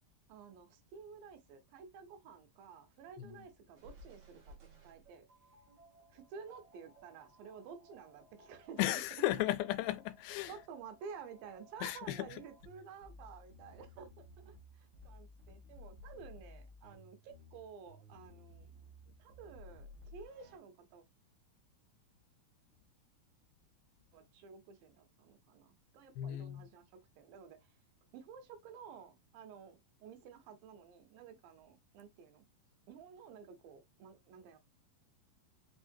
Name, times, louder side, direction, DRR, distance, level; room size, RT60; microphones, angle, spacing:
voice 1, 0.3-4.6 4.8-5.3 6.1-9.0 10.5-18.7 19.2-21.0 24.1-27.7 28.1-32.4 32.9-34.6, right 6 dB, 80° right, 2.7 m, -52 dB
sound 1, 3.8-20.6, left 1 dB, 50° right, 1.5 m, -58 dB
voice 2, 8.8-10.5 11.8-12.4 26.2-26.7, left 15 dB, 90° left, 2.4 m, -35 dB
5.4 x 3.5 x 2.6 m
omnidirectional pair, 4.1 m